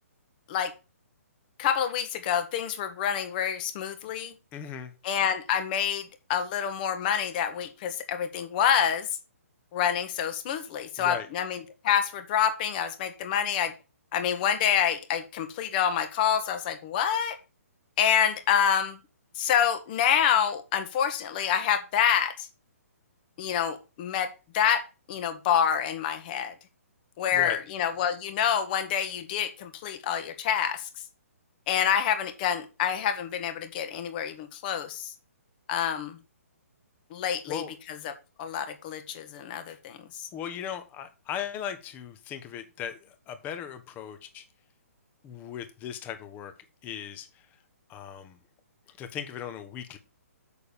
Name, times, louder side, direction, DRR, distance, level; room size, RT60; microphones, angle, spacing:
voice 1, 1.6-4.3 5.0-9.1 9.7-11.6 11.8-13.7 14.1-17.4 18.0-19.0 19.3-22.5 23.4-26.5 27.2-30.9 31.7-35.1 35.7-36.2 37.1-37.6 38.0-38.1 38.4-40.3, left 8 dB, 35° left, 9 dB, 1.7 m, -27 dB
voice 2, 4.5-4.9 11.0-11.3 27.3-27.6 37.5-37.8 40.3-44.4 45.2-46.5 46.8-47.5 47.9-48.4 48.9-50.0, left 9 dB, 20° left, 9 dB, 1.2 m, -38 dB
6.9 x 6.6 x 7.0 m, 0.31 s
hypercardioid pair, 145°, 8 cm